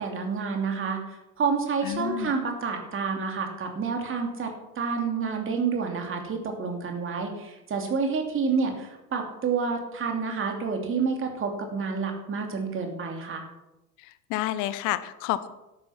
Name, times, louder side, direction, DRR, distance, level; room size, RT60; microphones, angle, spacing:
voice 1, 0.0-13.4, right 5 dB, 25° right, 3 dB, 2.7 m, -29 dB
voice 2, 1.8-2.3 14.3-15.5, left 14 dB, 40° left, 14 dB, 0.9 m, -29 dB
11.5 x 9.5 x 6.0 m, 0.98 s
figure-of-eight pair, 75°, 47 cm